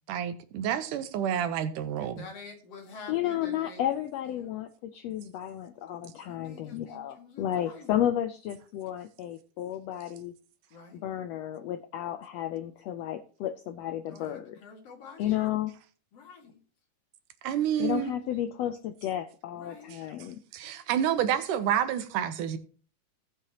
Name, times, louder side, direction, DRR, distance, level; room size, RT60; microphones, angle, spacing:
voice 1, 0.1-2.3 17.4-18.1 20.5-22.6, right 10 dB, 80° right, 2.4 m, -29 dB
voice 2, 2.0-3.8 4.3-4.5 6.2-7.9 10.7-11.1 14.1-15.6 16.1-16.6 19.5-20.0 20.6-21.0, left 4 dB, 55° left, 2.6 m, -48 dB
voice 3, 3.1-10.3 10.9-14.6 15.2-15.7 17.8-20.4, left 11 dB, 90° left, 1.4 m, -32 dB
17.5 x 6.6 x 2.9 m
omnidirectional pair, 3.7 m